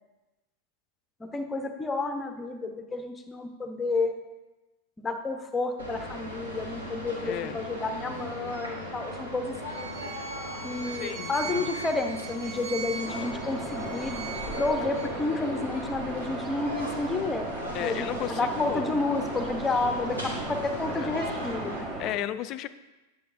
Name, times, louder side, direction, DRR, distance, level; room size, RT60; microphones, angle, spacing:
voice 1, 1.2-4.1 5.0-9.9 10.6-17.5 17.8-21.9, left 3 dB, 15° left, 6 dB, 0.8 m, -31 dB
sound 1, 5.8-21.8, equal, 85° right, 2.5 m, -39 dB
voice 2, 7.2-7.6 10.9-11.7 17.7-19.0 20.9-21.2 22.0-22.7, left 12 dB, 40° left, 13 dB, 0.4 m, -34 dB
Bowed string instrument, 9.7-15.1, right 5 dB, 55° right, 2.0 m, -40 dB
sound 2, 13.0-22.1, right 1 dB, 25° right, 1.3 m, -36 dB
9.8 x 7.7 x 2.5 m, 1.1 s
figure-of-eight pair, 90°, 0 cm